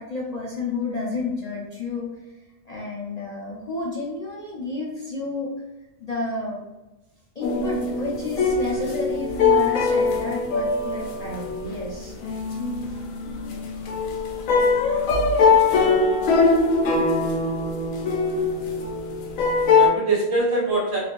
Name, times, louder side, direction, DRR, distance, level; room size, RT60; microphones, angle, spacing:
voice 1, 0.0-2.1 2.6-5.5 6.0-6.6 7.3-12.1, left 3 dB, 40° left, -6 dB, 0.6 m, -31 dB
sound 1, 7.4-19.9, left 4 dB, 80° left, 1.0 m, -22 dB
voice 2, 15.7-16.4 19.3-21.0, right 3 dB, 75° right, -5 dB, 1.6 m, -26 dB
3.3 x 3.1 x 2.5 m, 1.0 s
omnidirectional pair, 1.4 m